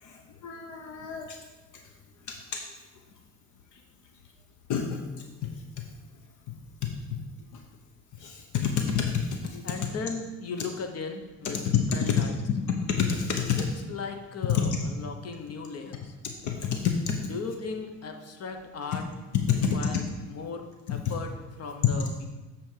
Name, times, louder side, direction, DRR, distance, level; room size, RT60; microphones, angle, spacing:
voice 1, 0.0-1.4 2.3-2.7 4.7-5.8 6.5-6.6 6.8-7.2 7.5-7.6 8.2-9.7 11.5-12.2 12.7-13.7 14.5-14.6 16.2-17.3 18.9-19.0 19.3-19.8 20.9-21.1, left 7 dB, 80° left, 3 dB, 0.9 m, -28 dB
voice 2, 9.6-11.6 11.9-12.4 13.6-16.1 17.3-19.0 19.7-22.3, left 4 dB, 55° left, 5 dB, 1.1 m, -37 dB
7.5 x 4.2 x 6.5 m, 1.2 s
cardioid pair, 90°, 30 cm